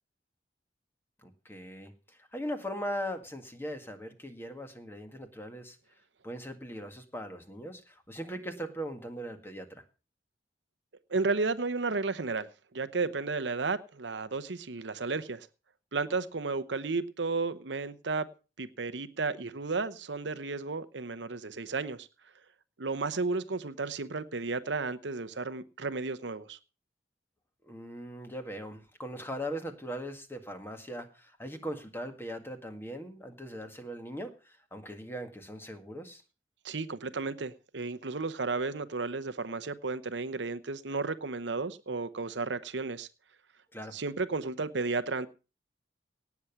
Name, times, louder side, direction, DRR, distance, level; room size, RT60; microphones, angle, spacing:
voice 1, 1.2-5.8 6.2-9.8 27.6-36.2 43.7-43.9, equal, 15° left, 7 dB, 1.8 m, -40 dB
voice 2, 11.1-15.5 15.9-18.3 18.6-22.1 22.8-26.6 36.6-43.1 43.9-45.3, right 3 dB, 75° right, 13 dB, 0.9 m, -33 dB
18.0 x 7.2 x 5.9 m, 0.34 s
head